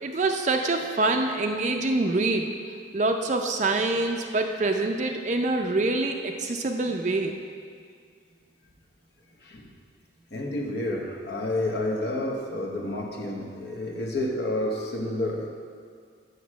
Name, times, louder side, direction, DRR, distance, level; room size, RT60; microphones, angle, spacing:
voice 1, 0.0-2.6 2.9-7.3, right 2 dB, 35° right, 4 dB, 0.4 m, -25 dB
voice 2, 9.4-9.7 10.3-15.5, left 1 dB, 55° left, 0 dB, 1.0 m, -30 dB
8.1 x 6.7 x 6.2 m, 2.2 s
head